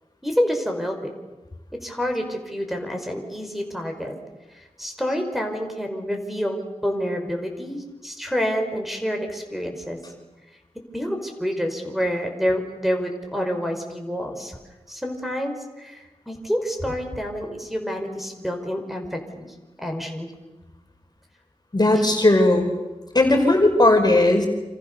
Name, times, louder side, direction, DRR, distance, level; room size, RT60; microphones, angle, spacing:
voice 1, 0.2-1.1 1.8-4.1 4.5-10.0 10.9-14.6 14.9-20.3 21.9-22.0 24.0-24.2, equal, ahead, 3 dB, 5.6 m, -28 dB
voice 2, 21.7-22.7 23.1-24.5, left 2 dB, 35° left, 3 dB, 5.3 m, -17 dB
28.5 x 27.5 x 7.0 m, 1.1 s
cardioid pair, 50°, 12 cm